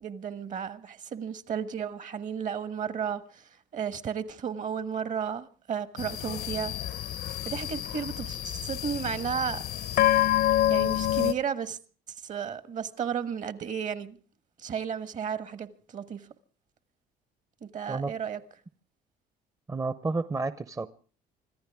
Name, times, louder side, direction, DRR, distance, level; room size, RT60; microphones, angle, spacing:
voice 1, 0.0-6.7 7.4-9.6 10.7-11.8 12.1-14.2 14.6-16.3 17.6-18.4, right 7 dB, 50° right, 1.4 m, -33 dB
sound 1, 6.0-11.3, left 13 dB, 70° left, 0.8 m, -27 dB
voice 2, 19.7-20.9, right 3 dB, 20° right, 0.7 m, -30 dB
26.0 x 14.5 x 3.5 m
cardioid pair, 110°, 17 cm